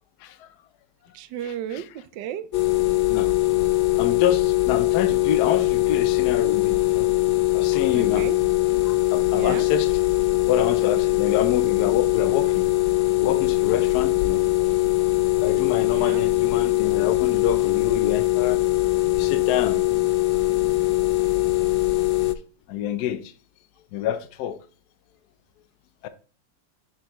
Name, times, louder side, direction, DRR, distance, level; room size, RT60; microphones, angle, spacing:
voice 1, 1.1-2.5 7.9-8.4 9.3-9.7 15.9-16.2, right 10 dB, 75° right, 1.2 m, -33 dB
sound 1, 2.5-22.3, left 18 dB, 85° left, 1.3 m, -21 dB
voice 2, 4.0-7.1 7.5-8.3 8.8-9.9 10.5-12.7 13.2-14.7 15.4-18.6 19.1-19.8 22.7-23.3 23.9-24.6 26.0-26.1, left 9 dB, 70° left, 1.1 m, -27 dB
6.8 x 6.7 x 3.0 m
omnidirectional pair, 2.0 m